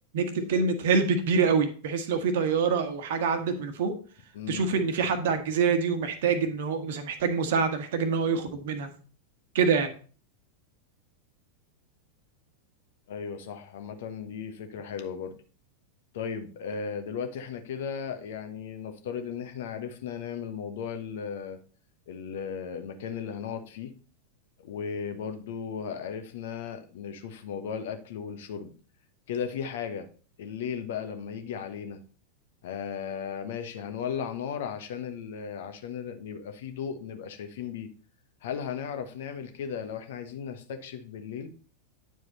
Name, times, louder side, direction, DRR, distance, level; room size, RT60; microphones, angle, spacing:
voice 1, 0.1-3.9 4.5-8.9 9.5-9.9, right 5 dB, 55° right, 8 dB, 1.3 m, -26 dB
voice 2, 4.3-4.7 13.1-15.3 16.1-21.6 22.1-23.9 24.6-28.7 29.3-30.1 30.4-32.0 32.6-37.9 38.4-41.5, left 7 dB, 55° left, 7 dB, 1.1 m, -36 dB
9.5 x 4.7 x 4.1 m, 0.39 s
figure-of-eight pair, 90°, 0 cm